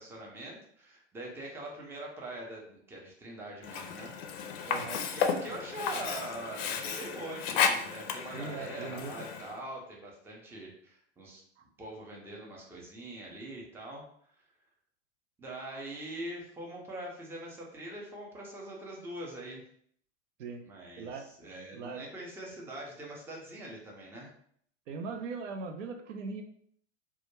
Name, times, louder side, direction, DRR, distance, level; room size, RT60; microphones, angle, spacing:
voice 1, 0.0-4.1 4.6-4.7 5.1-11.4 11.8-14.1 15.4-19.6 20.6-24.3, right 1 dB, 5° right, -2 dB, 0.4 m, -43 dB
Sink (filling or washing), 3.6-9.6, left 7 dB, 55° left, 0.4 m, -33 dB
voice 2, 4.7-5.1 8.3-9.3 15.7-15.8 20.4-20.6 21.0-21.3 21.7-22.1 24.9-26.4, right 4 dB, 70° right, 5 dB, 0.5 m, -39 dB
2.2 x 2.1 x 3.0 m, 0.63 s
hypercardioid pair, 100°, 38 cm